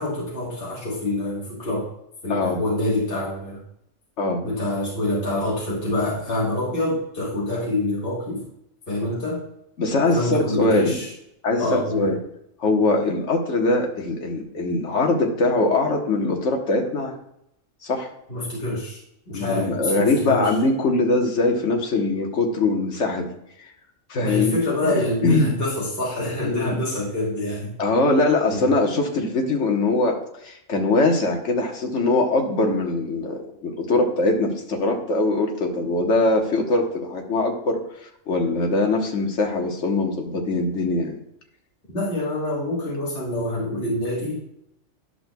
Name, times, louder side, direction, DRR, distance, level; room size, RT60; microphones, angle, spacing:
voice 1, 0.0-1.9 2.2-3.6 4.4-8.4 8.9-9.4 10.1-11.1 11.6-12.1 18.3-19.0 19.3-20.5 24.2-27.7 28.5-28.7 41.9-44.4, left 1 dB, 50° left, -5 dB, 1.7 m, -26 dB
voice 2, 2.3-2.6 4.2-4.4 9.8-10.9 11.4-12.2 12.6-17.1 17.8-18.1 19.3-23.3 24.1-24.5 24.8-25.5 26.4-26.8 27.8-30.2 30.4-41.2, left 2 dB, 65° left, 2 dB, 1.5 m, -22 dB
11.0 x 6.2 x 2.2 m, 0.77 s
omnidirectional pair, 1.3 m